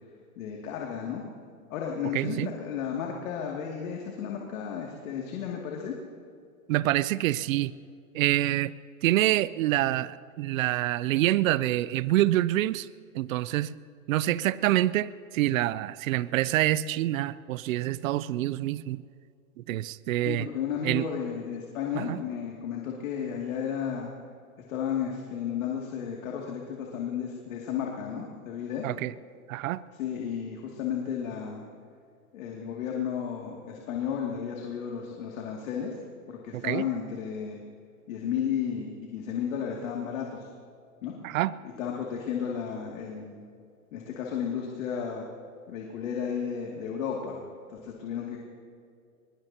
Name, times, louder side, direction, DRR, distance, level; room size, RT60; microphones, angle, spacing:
voice 1, 0.4-1.2 1.7-6.0 20.3-24.1 24.7-28.9 30.0-31.6 32.3-36.0 36.3-37.6 38.1-40.5 41.0-41.1 41.8-43.4 43.9-45.3 45.7-47.4 47.7-48.4, left 8 dB, 65° left, -1 dB, 2.6 m, -33 dB
voice 2, 2.1-2.5 6.7-7.7 8.1-8.7 9.0-12.9 13.1-13.8 14.1-19.0 19.7-20.5 20.8-21.0 21.9-22.2 28.8-29.1 29.5-29.8 36.5-36.9 41.2-41.5, right 15 dB, 70° right, 18 dB, 0.6 m, -26 dB
22.5 x 21.5 x 2.9 m, 2.3 s
hypercardioid pair, 120°, 43 cm